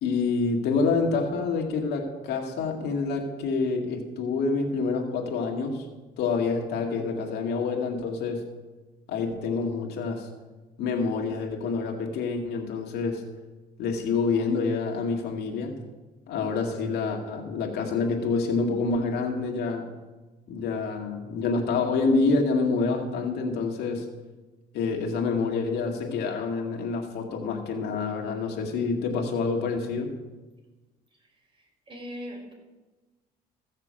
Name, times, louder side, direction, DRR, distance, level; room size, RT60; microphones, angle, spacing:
voice 1, 0.0-5.8 6.2-8.5 9.1-10.3 10.8-13.2 13.8-15.7 16.3-19.8 20.5-24.1 24.7-30.1, left 4 dB, 75° left, 1 dB, 2.2 m, -27 dB
voice 2, 31.9-32.5, equal, 30° right, 0 dB, 5.2 m, -38 dB
15.5 x 6.6 x 7.8 m, 1.2 s
cardioid pair, 110°, 17 cm